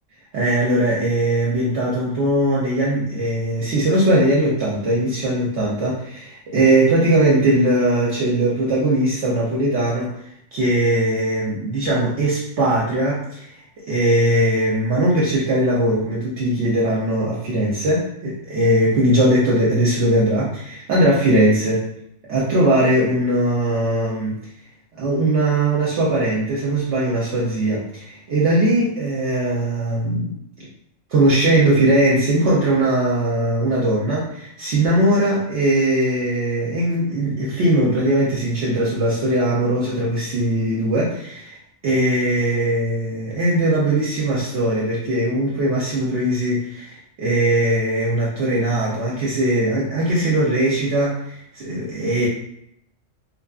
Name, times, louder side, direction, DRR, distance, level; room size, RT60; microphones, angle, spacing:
voice 1, 0.3-10.1 10.5-21.8 22.3-24.4 25.0-30.3 31.1-41.6 41.8-52.3, right 1 dB, 65° right, -5 dB, 0.8 m, -20 dB
2.6 x 2.2 x 2.3 m, 0.75 s
omnidirectional pair, 1.4 m